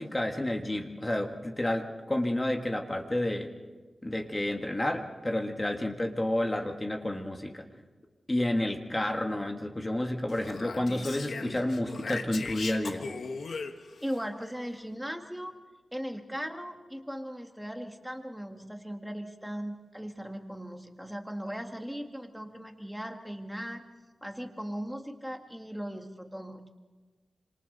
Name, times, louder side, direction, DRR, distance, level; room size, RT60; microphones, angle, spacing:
voice 1, 0.0-3.5 4.0-7.6 8.3-13.1, left 1 dB, 20° left, 3 dB, 1.6 m, -30 dB
Speech, 10.3-14.2, left 4 dB, 70° left, 1.3 m, -39 dB
voice 2, 14.0-15.6 15.9-23.8 24.2-26.7, equal, ahead, 4 dB, 1.8 m, -38 dB
26.5 x 26.5 x 4.0 m, 1.3 s
wide cardioid pair, 130°, 0 cm